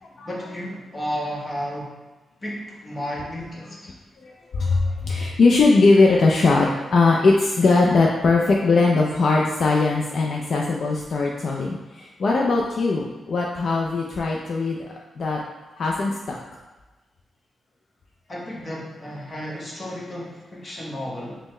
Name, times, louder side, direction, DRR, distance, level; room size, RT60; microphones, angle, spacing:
voice 1, 0.2-1.9 2.4-3.9 18.3-21.4, equal, 20° left, -4 dB, 0.9 m, -32 dB
voice 2, 4.2-14.8 15.2-15.4 15.8-16.4, left 3 dB, 50° left, -2 dB, 0.3 m, -20 dB
5.4 x 2.0 x 3.1 m, 1.2 s
wide cardioid pair, 150°, 0 cm